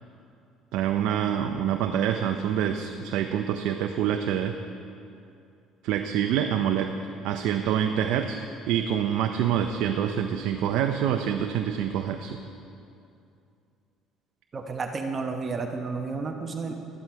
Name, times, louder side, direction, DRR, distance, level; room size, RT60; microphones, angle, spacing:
voice 1, 0.7-4.6 5.8-6.9 7.2-12.4, right 9 dB, 75° right, 5 dB, 0.6 m, -26 dB
voice 2, 14.5-16.7, right 4 dB, 35° right, 4 dB, 0.9 m, -31 dB
12.0 x 11.5 x 4.7 m, 2.6 s
cardioid pair, 100°, 0 cm